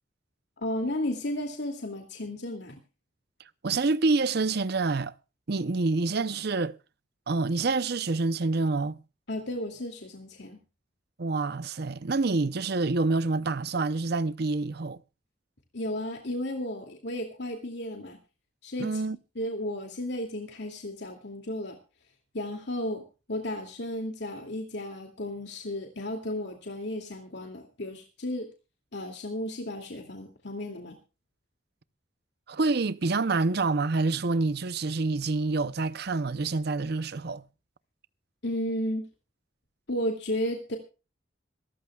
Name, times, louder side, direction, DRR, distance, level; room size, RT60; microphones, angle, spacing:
voice 1, 0.6-2.8 9.3-10.6 15.7-18.2 18.6-19.0 19.4-21.8 22.3-28.5 28.9-31.0 38.4-39.1 39.9-40.8, left 1 dB, 60° left, 2.5 m, -33 dB
voice 2, 3.6-5.1 5.5-6.8 7.3-9.0 11.2-15.0 18.8-19.2 32.5-37.4, right 3 dB, 55° right, 0.7 m, -27 dB
26.0 x 14.0 x 2.4 m
head